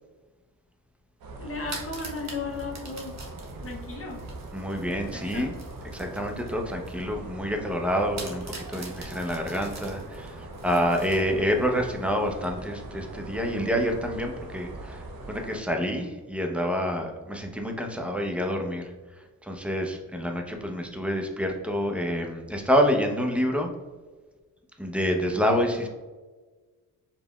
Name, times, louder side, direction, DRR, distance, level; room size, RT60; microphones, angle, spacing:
sound 1, 1.2-15.6, right 2 dB, 75° right, 0.8 m, -41 dB
voice 1, 1.4-3.2 3.6-4.2 5.0-5.5, left 4 dB, 40° left, 1 dB, 0.8 m, -35 dB
sound 2, 1.5-7.0 7.4-7.5 8.2-11.6, right 3 dB, 50° right, 1.1 m, -44 dB
voice 2, 4.5-5.5 5.9-23.7 24.8-25.9, equal, 5° right, 2 dB, 0.8 m, -28 dB
4.9 x 3.4 x 2.3 m, 1.3 s
cardioid pair, 65°, 35 cm